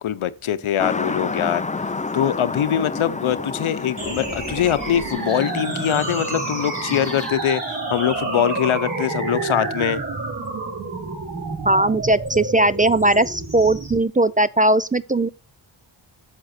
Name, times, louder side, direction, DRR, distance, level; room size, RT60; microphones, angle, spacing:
voice 1, 0.0-10.0, left 10 dB, 85° left, 0.8 m, -23 dB
sound 1, 0.8-7.3, left 3 dB, 15° left, 0.6 m, -30 dB
sound 2, 4.0-14.0, right 3 dB, 40° right, 5.7 m, -29 dB
voice 2, 11.6-15.3, right 2 dB, 20° right, 0.4 m, -18 dB
7.8 x 7.5 x 4.2 m
cardioid pair, 50°, 48 cm